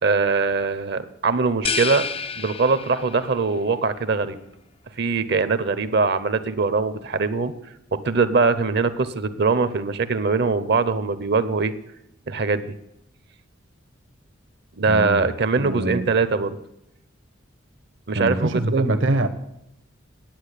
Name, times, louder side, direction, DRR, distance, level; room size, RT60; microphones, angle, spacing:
voice 1, 0.0-2.1 2.4-4.4 5.0-7.5 7.9-11.7 12.3-12.7 14.8-16.6 18.1-18.6, right 4 dB, 55° right, 13 dB, 0.7 m, -22 dB
sound 1, 1.6-3.4, left 5 dB, 30° left, 0.4 m, -29 dB
voice 2, 14.9-15.2 15.6-16.0 18.1-19.3, right 2 dB, 70° right, 8 dB, 1.1 m, -23 dB
10.5 x 8.5 x 8.1 m, 0.82 s
head